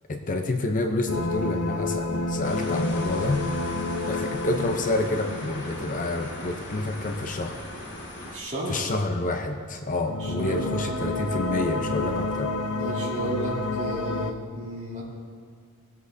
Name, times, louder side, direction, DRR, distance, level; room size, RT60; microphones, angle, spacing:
voice 1, 0.1-3.4 4.1-7.6 8.7-12.5, left 2 dB, 35° left, 5 dB, 0.6 m, -28 dB
sound 1, 1.1-7.1 9.9-14.3, left 2 dB, 85° left, 0.7 m, -30 dB
sound 2, 2.4-8.4, left 1 dB, 55° left, 1.7 m, -39 dB
voice 2, 8.3-8.8 10.2-11.2 12.7-15.0, right 1 dB, 35° right, -6 dB, 2.9 m, -33 dB
19.0 x 8.1 x 2.7 m, 2.2 s
head